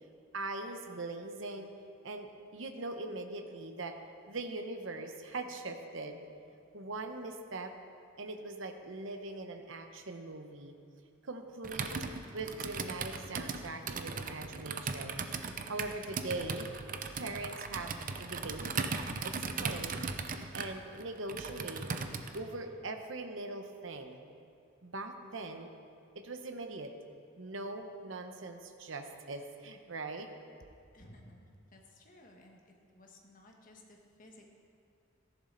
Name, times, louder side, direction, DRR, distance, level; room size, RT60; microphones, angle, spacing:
voice 1, 0.3-1.7 2.0-4.0 4.3-6.2 6.7-7.7 8.2-10.7 11.2-11.9 12.3-15.2 15.7-16.7 17.1-17.9 18.2-18.7 19.2-20.1 20.5-21.9 22.3-24.2 24.8-25.7 26.1-26.9 27.4-30.3, right 2 dB, 70° right, 6 dB, 1.0 m, -41 dB
Computer keyboard, 11.6-22.4, right 4 dB, 40° right, 0.6 m, -38 dB
voice 2, 30.9-31.4 31.7-32.6 32.9-34.5, left 1 dB, 45° left, 1 dB, 1.5 m, -56 dB
14.0 x 11.0 x 4.0 m, 2.4 s
head